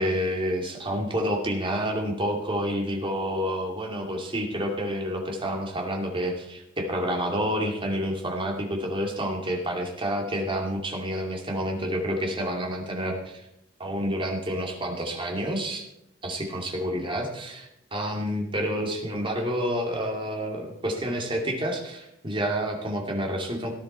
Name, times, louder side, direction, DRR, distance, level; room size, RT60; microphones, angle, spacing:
voice 1, 0.0-13.4 13.8-15.8 16.2-23.7, equal, 25° right, 1 dB, 2.6 m, -29 dB
18.0 x 10.0 x 4.5 m, 0.79 s
head